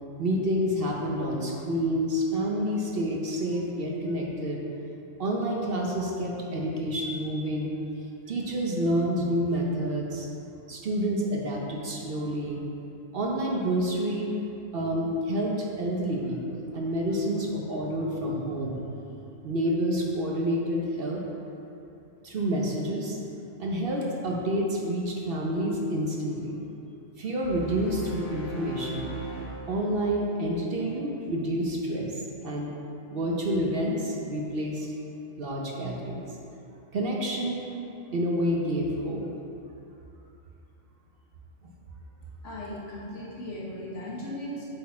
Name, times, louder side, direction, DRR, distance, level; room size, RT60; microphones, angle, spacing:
voice 1, 0.2-4.6 5.2-7.7 8.3-10.3 10.7-12.6 13.1-14.3 14.7-18.8 19.4-21.2 22.2-23.2 23.6-26.6 27.2-29.1 29.7-32.7 33.1-34.9 35.4-36.4 36.9-37.7 38.1-39.2, equal, 55° right, -2 dB, 0.8 m, -28 dB
sound 1, 27.4-30.7, right 2 dB, 30° left, 0.7 m, -40 dB
voice 2, 42.4-44.6, left 1 dB, 70° left, -7 dB, 1.7 m, -37 dB
7.8 x 4.2 x 4.3 m, 2.8 s
omnidirectional pair, 1.3 m